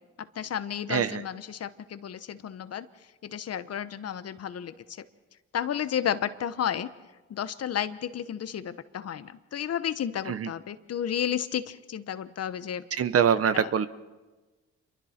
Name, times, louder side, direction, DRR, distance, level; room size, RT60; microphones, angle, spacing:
voice 1, 0.2-2.9 3.2-5.0 5.5-6.9 7.3-12.8 13.5-13.7, left 9 dB, 55° left, 13 dB, 1.1 m, -32 dB
voice 2, 13.0-13.9, right 8 dB, 50° right, 13 dB, 1.0 m, -24 dB
27.5 x 23.0 x 4.4 m, 1.2 s
cardioid pair, 90°, 30 cm